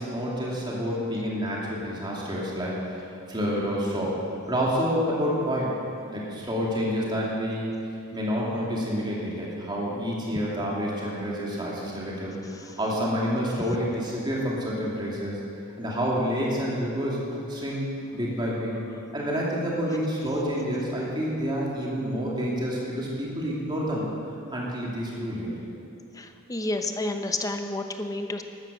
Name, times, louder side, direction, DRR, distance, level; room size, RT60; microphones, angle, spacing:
voice 1, 0.0-4.2 4.5-5.7 6.1-7.7 8.1-12.4 12.8-15.4 15.8-17.2 17.5-17.9 18.1-18.7 19.1-24.0 24.5-25.5, equal, 25° right, -5 dB, 2.8 m, -28 dB
voice 2, 26.2-28.4, left 2 dB, 15° left, 5 dB, 0.8 m, -30 dB
14.0 x 12.5 x 6.5 m, 2.5 s
head